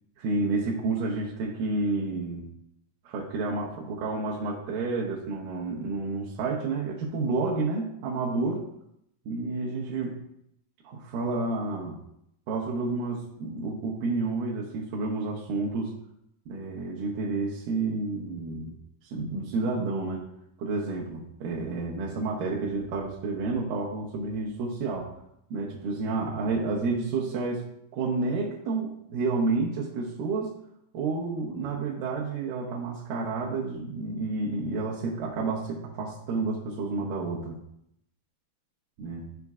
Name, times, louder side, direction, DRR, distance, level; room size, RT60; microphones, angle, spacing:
voice 1, 0.2-2.4 3.0-8.6 9.3-10.2 10.8-12.0 12.5-15.9 16.5-18.8 19.0-20.2 20.6-25.1 25.5-27.6 27.9-30.5 30.9-37.6 39.0-39.3, right 3 dB, 75° right, -3 dB, 2.5 m, -30 dB
12.0 x 5.2 x 2.4 m, 0.75 s
omnidirectional pair, 4.1 m